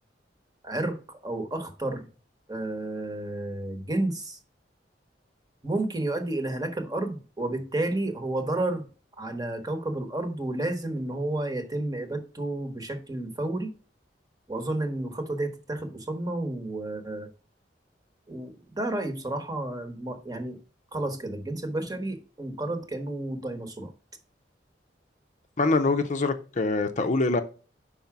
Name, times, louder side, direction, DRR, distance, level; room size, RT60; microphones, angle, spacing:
voice 1, 0.6-2.1 2.5-4.4 5.6-8.9 9.2-13.7 14.5-17.3 18.3-20.6 20.9-23.9, right 2 dB, 20° right, 1.1 m, -31 dB
voice 2, 25.6-27.4, left 3 dB, 40° left, 0.6 m, -24 dB
5.4 x 4.8 x 5.9 m
head